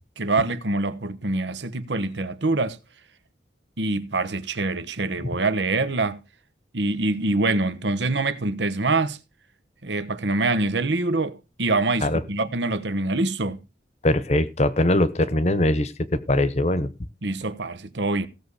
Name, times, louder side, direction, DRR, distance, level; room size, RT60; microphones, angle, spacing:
voice 1, 0.2-2.8 3.8-6.2 6.7-9.2 9.8-13.6 17.2-18.3, right 2 dB, 75° right, 1.2 m, -25 dB
voice 2, 14.0-16.9, left 1 dB, 35° left, 0.9 m, -21 dB
16.5 x 7.0 x 4.8 m
head